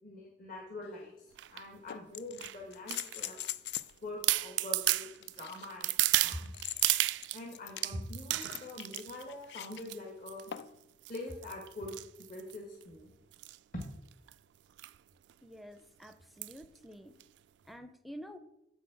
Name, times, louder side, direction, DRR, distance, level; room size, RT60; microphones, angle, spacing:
voice 1, 0.0-3.4 4.0-5.1 5.4-5.9 6.2-6.6 6.9-10.5 11.1-11.9 12.3-13.1 13.7-13.8, left 1 dB, 50° left, -1 dB, 1.6 m, -44 dB
sound 1, 0.8-0.9 1.9-4.0 4.8-9.8 10.5-10.9 12.5-12.6, left 11 dB, 70° left, 0.4 m, -43 dB
sound 2, 1.4-1.6 2.4-3.5 3.9-4.0 4.2-7.4 7.8-9.2 9.7-10.0 10.3-10.6 11.0-12.8 13.3-13.6 13.8-13.9 14.1-14.3 14.8-15.0 15.3-15.4 16.4-16.6 17.2-17.3, right 17 dB, 85° right, 0.3 m, -33 dB
voice 2, 15.4-17.1 17.7-18.4, equal, ahead, 10 dB, 0.6 m, -49 dB
7.5 x 6.3 x 6.0 m, 0.86 s
head